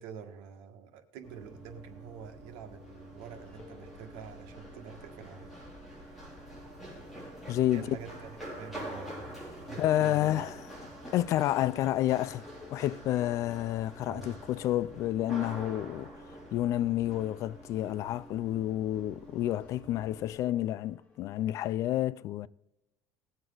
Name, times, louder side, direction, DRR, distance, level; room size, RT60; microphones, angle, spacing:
voice 1, 0.0-5.5 5.9-6.3 7.7-9.4 9.7-10.4 14.0-14.4, right 8 dB, 85° right, 1.7 m, -47 dB
Run, 1.2-20.3, right 1 dB, ahead, 4.6 m, -46 dB
sound 1, 2.8-21.2, left 3 dB, 20° left, 1.7 m, -60 dB
voice 2, 7.5-8.0 9.8-10.6 11.1-12.4 12.7-16.1 16.5-22.5, left 13 dB, 45° left, 0.3 m, -29 dB
19.5 x 7.8 x 3.9 m
cardioid pair, 160°, 7 cm